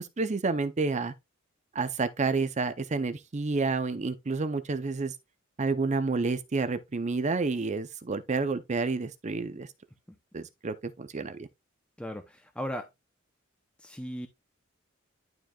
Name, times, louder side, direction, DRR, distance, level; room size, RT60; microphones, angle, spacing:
voice 1, 0.2-1.1 1.7-5.1 5.6-9.7 10.3-11.5, right 4 dB, 35° right, 0.6 m, -29 dB
voice 2, 12.0-12.9 13.8-14.3, equal, 5° left, 0.6 m, -37 dB
11.5 x 4.5 x 2.3 m
head